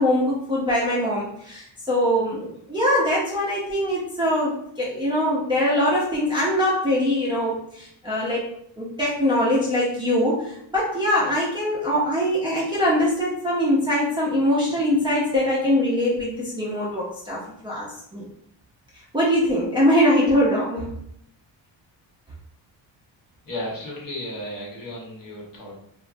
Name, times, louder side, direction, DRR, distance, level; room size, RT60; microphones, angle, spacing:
voice 1, 0.0-8.4 8.8-17.9 18.1-18.3 19.1-20.9, equal, 10° right, -7 dB, 0.4 m, -22 dB
voice 2, 23.4-25.8, left 1 dB, 50° left, -5 dB, 1.1 m, -34 dB
3.0 x 2.2 x 2.5 m, 0.72 s
wide cardioid pair, 155°, 45 cm